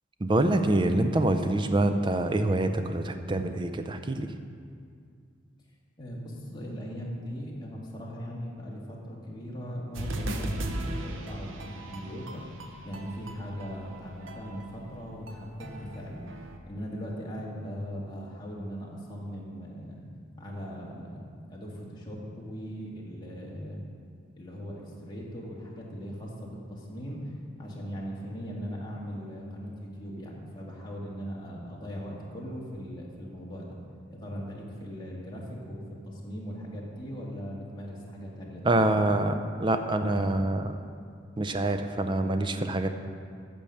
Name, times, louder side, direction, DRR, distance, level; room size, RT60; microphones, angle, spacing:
voice 1, 0.2-4.3 38.6-39.3 39.6-40.8 41.4-42.9, right 2 dB, 25° right, 8 dB, 0.5 m, -25 dB
voice 2, 6.0-12.4 12.8-20.1 20.4-23.8 24.4-27.3 27.6-33.8 34.1-38.9, equal, 20° left, -4 dB, 1.6 m, -39 dB
sound 1, 9.9-16.6, right 1 dB, 75° right, 0.8 m, -38 dB
8.7 x 6.9 x 6.5 m, 2.2 s
head